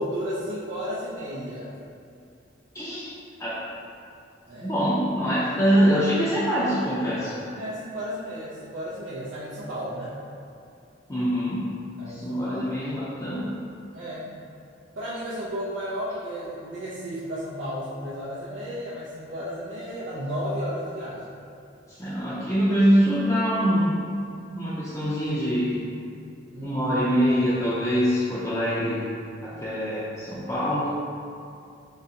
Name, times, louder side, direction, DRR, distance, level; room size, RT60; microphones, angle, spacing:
voice 1, 0.0-1.8 4.5-4.8 7.2-10.2 12.0-12.6 13.9-14.3 14.9-21.3 26.5-27.1, equal, 90° right, -8 dB, 0.5 m, -33 dB
voice 2, 2.7-3.1 3.4-3.6 4.6-7.3 11.1-11.8 12.1-13.6 21.9-23.9 24.5-25.8 26.6-29.1 29.4-30.9, equal, 15° left, -10 dB, 0.5 m, -24 dB
3.8 x 3.2 x 2.8 m, 2.5 s
head